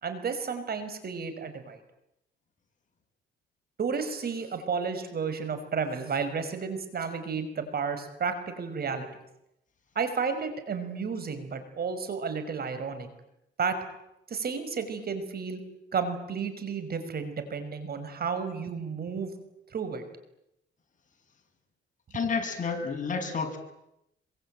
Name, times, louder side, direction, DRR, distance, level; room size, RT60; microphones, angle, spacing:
voice 1, 0.0-1.8 3.8-9.1 10.0-13.1 13.6-13.8 14.3-15.6 15.9-19.3 19.7-20.0, right 5 dB, 50° right, 10 dB, 5.5 m, -32 dB
voice 2, 22.1-23.6, left 5 dB, 40° left, 4 dB, 7.0 m, -30 dB
26.5 x 24.5 x 9.1 m, 0.84 s
cardioid pair, 90°, 20 cm